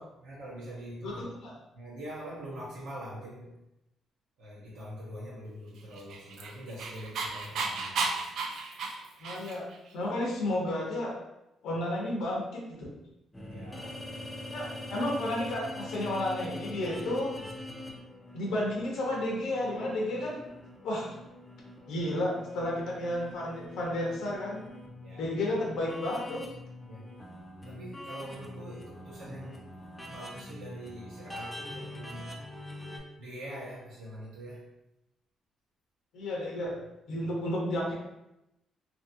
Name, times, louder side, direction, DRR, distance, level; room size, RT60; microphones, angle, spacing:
voice 1, 0.2-1.2 1.7-3.6 4.4-8.1 13.5-14.4 16.0-16.1 25.0-25.4 26.8-27.1 27.6-29.7 30.1-32.5 33.1-34.7 37.1-37.3, right 1 dB, 90° right, -8 dB, 0.8 m, -44 dB
voice 2, 1.0-1.5 9.2-9.7 9.9-11.2 11.6-12.9 14.5-17.3 18.3-20.4 20.8-21.1 21.9-24.6 25.2-26.4 36.1-36.7 37.1-37.9, left 1 dB, 80° left, -2 dB, 0.7 m, -32 dB
Dog, 5.9-9.8, right 4 dB, 70° right, 0.4 m, -34 dB
sound 1, 13.3-33.0, left 1 dB, 10° left, 0.5 m, -44 dB
2.8 x 2.6 x 2.6 m, 0.89 s
cardioid pair, 120°, 0 cm